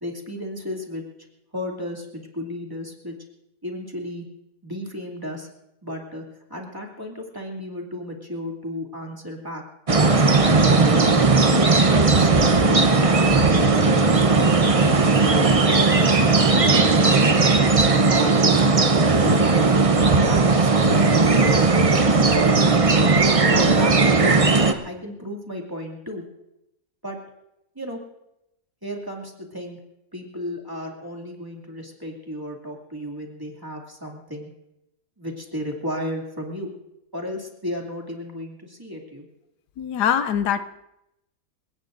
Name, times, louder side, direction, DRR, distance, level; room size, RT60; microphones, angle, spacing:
voice 1, 0.0-1.0 1.5-3.2 3.6-4.3 4.6-5.5 5.8-6.2 6.5-9.6 9.9-10.2 10.9-11.5 11.8-14.8 15.3-18.7 19.0-19.6 20.0-22.0 22.3-22.6 23.0-24.4 24.8-26.2 27.0-27.2 27.7-28.0 28.8-29.8 30.1-34.5 35.2-36.7 37.1-39.3, equal, 10° right, -1 dB, 2.4 m, -33 dB
sound 1, 9.9-24.7, right 3 dB, 30° right, 0.6 m, -17 dB
voice 2, 39.8-40.6, left 9 dB, 80° left, 11 dB, 1.3 m, -22 dB
28.0 x 17.5 x 2.6 m, 0.90 s
omnidirectional pair, 1.8 m